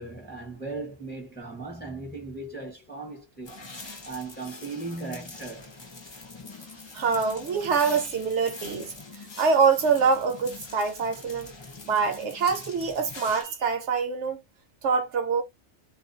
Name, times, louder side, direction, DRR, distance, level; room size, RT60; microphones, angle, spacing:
voice 1, 0.0-3.6 4.0-5.7, right 3 dB, 10° left, 0.8 m, -37 dB
sound 1, 3.4-13.4, left 3 dB, 35° left, 0.4 m, -43 dB
voice 2, 6.9-11.5 11.9-14.4 14.8-15.4, right 5 dB, 70° right, 1.0 m, -25 dB
2.4 x 2.2 x 2.5 m
omnidirectional pair, 1.3 m